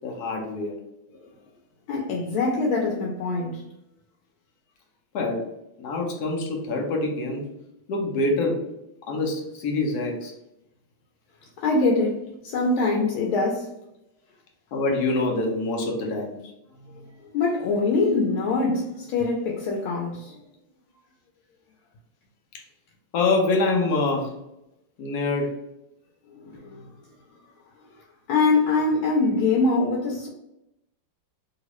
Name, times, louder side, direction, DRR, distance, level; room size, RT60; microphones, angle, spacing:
voice 1, 0.0-0.8 5.1-5.5 5.8-7.5 7.9-8.6 9.1-10.3 14.7-16.4 23.1-24.3 25.0-25.5 26.5-26.6, left 2 dB, 65° left, 1.1 m, -25 dB
voice 2, 1.9-3.6 11.6-13.7 16.9-17.0 17.3-20.4 26.3-26.9 28.3-30.3, left 3 dB, 90° left, 1.4 m, -24 dB
3.0 x 2.9 x 3.0 m
omnidirectional pair, 2.2 m